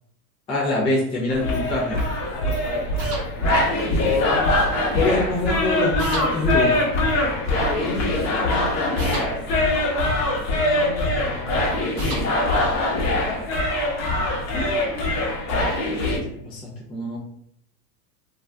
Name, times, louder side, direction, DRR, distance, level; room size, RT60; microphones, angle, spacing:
voice 1, 0.5-2.0 4.9-6.8 14.5-15.1 16.1-16.2 16.4-17.2, left 2 dB, 15° left, -5 dB, 0.4 m, -25 dB
sound 1, 1.3-16.2, left 1 dB, 40° left, 0.9 m, -23 dB
voice 2, 2.3-3.1 4.0-4.4 7.4-9.1 10.4-12.0 13.0-13.4, left 5 dB, 75° left, 0 dB, 1.1 m, -31 dB
sound 2, 3.0-3.2 6.0-6.3 9.0-9.3 12.0-12.2, right 3 dB, 35° right, 0.7 m, -32 dB
2.5 x 2.2 x 3.3 m, 0.71 s
supercardioid pair, 140°, 45 cm